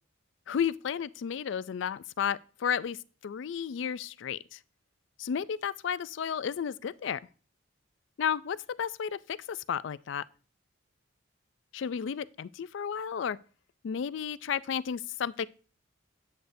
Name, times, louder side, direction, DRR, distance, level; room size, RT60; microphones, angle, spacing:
voice 1, 0.5-4.6 5.2-7.2 8.2-10.2 11.7-13.4 13.8-15.5, left 7 dB, 65° left, 0.3 m, -33 dB
10.0 x 7.9 x 2.6 m
head